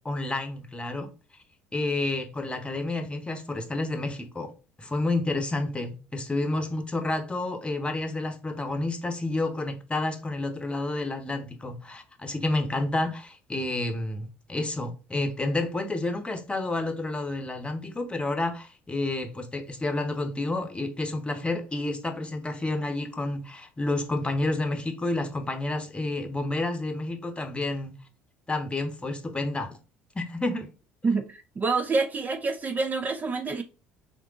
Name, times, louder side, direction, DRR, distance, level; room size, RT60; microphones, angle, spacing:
voice 1, 0.0-1.1 1.7-4.5 4.8-27.9 28.5-29.8 30.1-30.7, left 2 dB, 15° left, 1.0 m, -30 dB
voice 2, 31.0-33.6, right 4 dB, 25° right, 0.5 m, -27 dB
3.9 x 3.5 x 3.7 m
figure-of-eight pair, 60°, 6 cm